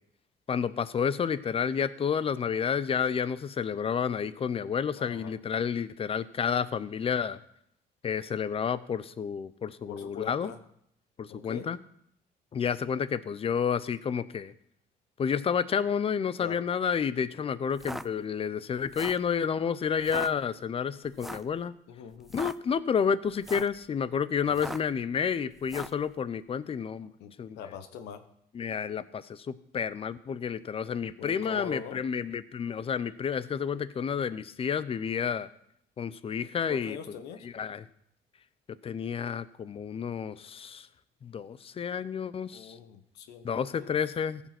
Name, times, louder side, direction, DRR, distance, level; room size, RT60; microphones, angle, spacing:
voice 1, 0.5-7.4 8.0-10.5 11.2-11.8 12.5-14.5 15.2-21.7 22.3-27.1 27.4-27.6 28.5-35.5 36.0-37.0 37.4-37.8 38.8-40.9 41.2-42.8 43.4-44.4, left 7 dB, 35° left, 17 dB, 0.7 m, -30 dB
voice 2, 4.9-5.3 9.9-10.6 11.3-11.7 16.4-16.6 21.9-22.3 24.5-24.8 27.2-28.2 31.2-32.0 36.7-37.5 42.5-43.9, left 7 dB, 80° left, 10 dB, 1.2 m, -42 dB
sound 1, 17.7-18.1 18.8-19.3 20.0-20.3 21.2-21.5 22.2-22.6 23.3-23.8 24.5-24.9 25.6-26.0, equal, ahead, 0.4 m, -39 dB
15.0 x 7.1 x 6.0 m, 0.71 s
cardioid pair, 110°, 17 cm